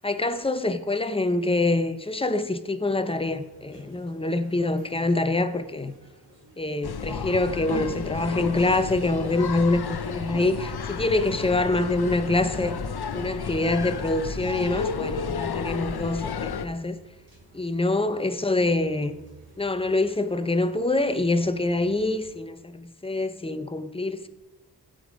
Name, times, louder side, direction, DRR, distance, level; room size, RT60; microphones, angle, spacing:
voice 1, 0.0-5.9 6.6-12.8 13.1-17.0 17.5-19.2 19.6-24.3, left 2 dB, 15° left, 0.6 m, -25 dB
sound 1, 3.1-22.4, right 2 dB, 30° right, 3.7 m, -53 dB
sound 2, 6.8-16.7, left 6 dB, 70° left, 0.7 m, -32 dB
16.0 x 5.3 x 5.1 m
wide cardioid pair, 105°, 41 cm